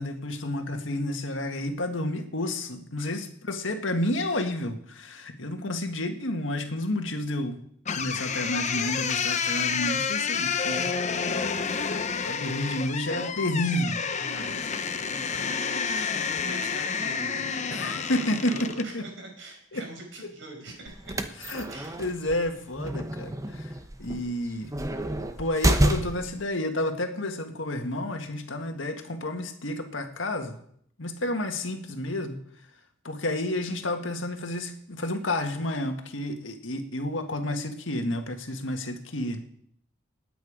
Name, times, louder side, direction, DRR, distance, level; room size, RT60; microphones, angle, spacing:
voice 1, 0.0-7.6 7.9-10.9 12.2-14.0 17.7-19.0 19.7-19.8 21.4-21.7 22.0-24.7 25.4-30.6 31.0-32.4 33.0-39.4, left 1 dB, 80° left, 5 dB, 1.8 m, -30 dB
sound 1, 7.8-18.9, left 6 dB, 40° left, 0.8 m, -29 dB
voice 2, 14.2-21.1 21.7-22.0, right 2 dB, 70° right, 1 dB, 5.3 m, -43 dB
sound 2, 20.9-26.4, right 1 dB, 15° right, 0.9 m, -29 dB
20.0 x 9.2 x 5.1 m, 0.67 s
head